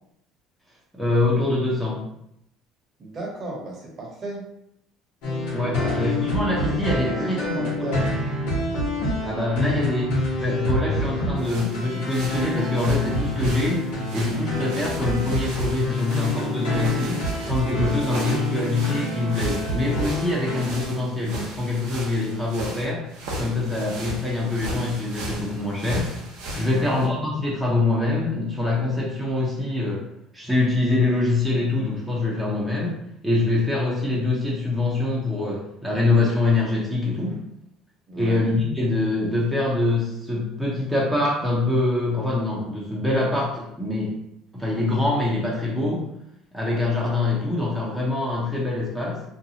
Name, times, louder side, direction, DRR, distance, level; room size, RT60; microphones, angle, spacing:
voice 1, 0.9-2.0 5.5-7.9 9.2-17.2 17.5-23.0 23.4-26.1 26.5-30.0 30.3-37.4 38.1-44.1 44.5-46.1 46.5-49.2, left 2 dB, ahead, -6 dB, 0.6 m, -24 dB
voice 2, 3.0-4.4 5.8-6.8 7.0-8.0 26.6-27.0 38.1-38.4, right 1 dB, 35° right, -2 dB, 0.9 m, -34 dB
sound 1, 5.2-20.6, left 1 dB, 90° left, 1.1 m, -27 dB
sound 2, 11.4-27.1, right 1 dB, 80° right, 0.7 m, -37 dB
2.6 x 2.2 x 2.7 m, 0.77 s
cardioid pair, 130°, 0 cm